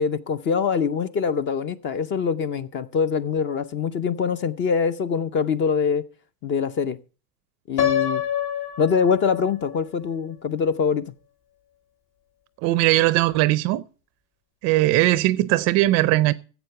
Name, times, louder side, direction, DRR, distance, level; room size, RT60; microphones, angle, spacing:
voice 1, 0.0-6.0 6.4-7.0 7.7-8.2 8.8-11.1, left 6 dB, 25° left, 0.6 m, -24 dB
Piano, 7.8-9.7, left 9 dB, 50° left, 1.9 m, -26 dB
voice 2, 12.6-13.8 14.6-16.3, right 17 dB, 35° right, 0.5 m, -19 dB
11.0 x 7.9 x 6.7 m
supercardioid pair, 125°, 44 cm